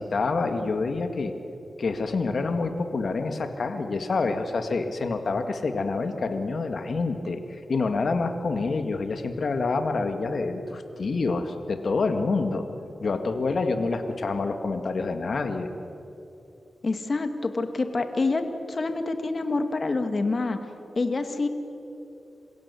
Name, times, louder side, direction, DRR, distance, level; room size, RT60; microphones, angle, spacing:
voice 1, 0.0-1.3 1.8-12.7 13.0-15.7, left 3 dB, 65° left, 7 dB, 2.1 m, -27 dB
voice 2, 16.8-20.6 21.0-21.5, left 3 dB, 50° left, 8 dB, 2.1 m, -27 dB
28.0 x 16.5 x 8.4 m, 2.9 s
cardioid pair, 60°, 0 cm